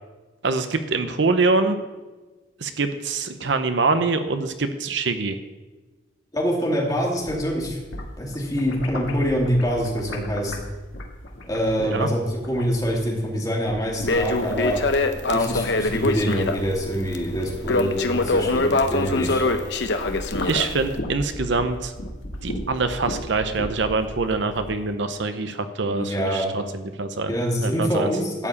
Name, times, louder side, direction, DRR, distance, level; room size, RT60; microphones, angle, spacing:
voice 1, 0.4-1.8 2.6-5.4 11.8-12.1 20.4-21.9 22.4-28.1, right 3 dB, 65° right, 9 dB, 0.7 m, -24 dB
voice 2, 6.3-7.8 8.2-10.5 11.5-14.8 15.3-19.4 25.8-26.5 27.3-28.5, equal, 20° left, -3 dB, 2.4 m, -25 dB
sound 1, 7.1-13.3 13.6-19.6 19.9-24.7, left 1 dB, 90° left, 1.8 m, -36 dB
Crackle, 14.0-21.0, left 2 dB, 65° left, 0.8 m, -24 dB
12.5 x 4.9 x 8.2 m, 1.2 s
head